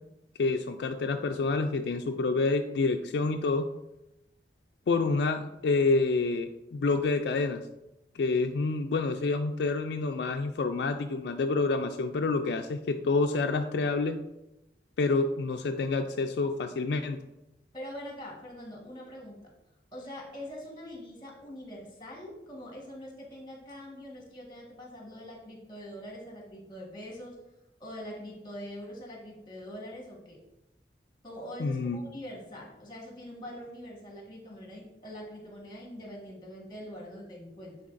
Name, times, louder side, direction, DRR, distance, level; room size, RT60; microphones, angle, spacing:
voice 1, 0.4-3.7 4.9-7.6 8.1-14.2 15.0-17.2 31.6-32.0, left 3 dB, 75° left, 6 dB, 0.4 m, -28 dB
voice 2, 17.7-19.5 19.9-27.4 27.8-30.4 31.2-37.8, equal, 25° left, -2 dB, 1.6 m, -43 dB
9.4 x 4.1 x 2.5 m, 0.91 s
head